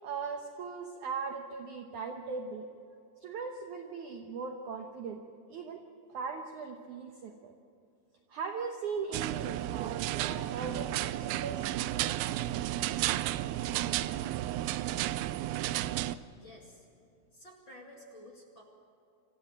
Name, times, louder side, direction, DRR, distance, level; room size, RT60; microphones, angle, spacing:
voice 1, 0.0-2.7 3.2-5.2 5.5-5.8 6.1-7.5 8.3-11.7, right 5 dB, 70° right, 3 dB, 1.9 m, -39 dB
sound 1, 9.1-16.2, right 14 dB, 85° right, 2.1 m, -32 dB
voice 2, 16.3-16.9 17.3-18.6, left 1 dB, 35° left, -1 dB, 2.4 m, -52 dB
25.5 x 14.5 x 7.7 m, 2.7 s
omnidirectional pair, 4.9 m